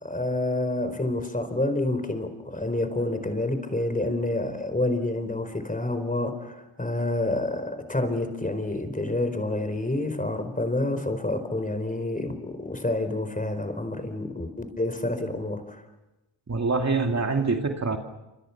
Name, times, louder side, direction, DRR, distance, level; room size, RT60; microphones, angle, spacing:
voice 1, 0.0-15.8, left 2 dB, 20° left, 9 dB, 4.6 m, -28 dB
voice 2, 16.5-18.0, right 4 dB, 35° right, 3 dB, 2.6 m, -25 dB
28.5 x 25.5 x 6.0 m, 1.0 s
cardioid pair, 70°, 45 cm